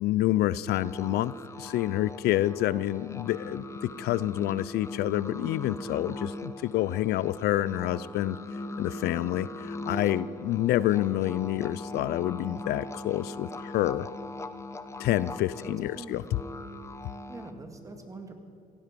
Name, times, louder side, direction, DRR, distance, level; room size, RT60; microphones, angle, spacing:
voice 1, 0.0-8.4 8.8-14.1 15.0-16.2, left 14 dB, 75° left, 19 dB, 0.4 m, -28 dB
sound 1, 0.7-17.5, left 1 dB, 15° left, 0.9 m, -40 dB
voice 2, 15.7-16.5 17.3-18.3, right 2 dB, 20° right, 5 dB, 2.1 m, -45 dB
17.5 x 16.0 x 5.2 m, 2.7 s
cardioid pair, 110°, 17 cm